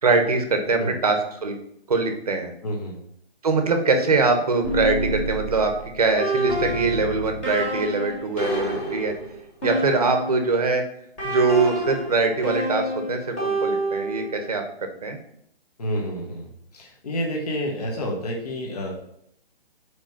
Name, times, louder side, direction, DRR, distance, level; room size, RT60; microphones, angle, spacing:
voice 1, 0.0-1.6 1.9-2.5 3.4-9.1 9.6-10.8 11.2-15.2, right 4 dB, 40° right, 5 dB, 0.9 m, -23 dB
voice 2, 2.6-3.0 15.8-18.9, equal, 40° left, -1 dB, 1.4 m, -29 dB
sound 1, 4.6-10.6 11.2-14.4, equal, 10° left, 1.1 m, -28 dB
5.1 x 4.8 x 5.8 m, 0.72 s
hypercardioid pair, 175°, 31 cm